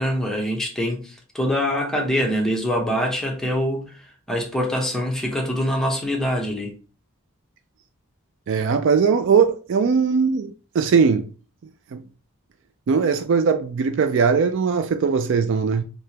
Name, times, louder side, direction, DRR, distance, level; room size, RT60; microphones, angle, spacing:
voice 1, 0.0-3.9 4.3-6.7, equal, ahead, 0.7 m, -24 dB
voice 2, 8.5-11.3 11.9-12.0 12.9-15.8, right 5 dB, 60° right, 0.3 m, -20 dB
3.3 x 2.8 x 2.8 m
head